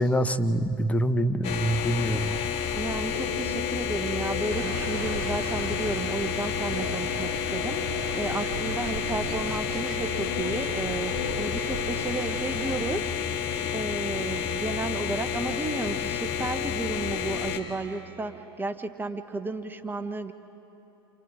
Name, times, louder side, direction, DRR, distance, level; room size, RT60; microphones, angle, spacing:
voice 1, 0.0-2.3, equal, 10° left, 10 dB, 1.0 m, -25 dB
sound 1, 1.4-17.6, left 7 dB, 50° left, 2.1 m, -30 dB
voice 2, 2.7-13.4 13.7-20.3, right 3 dB, 15° right, 8 dB, 1.1 m, -33 dB
sound 2, 3.0-15.1 15.4-15.5, left 6 dB, 80° left, 2.3 m, -41 dB
sound 3, 4.5-13.0, right 7 dB, 70° right, 1.2 m, -39 dB
29.0 x 27.0 x 4.9 m, 2.9 s
hypercardioid pair, 80°, 13 cm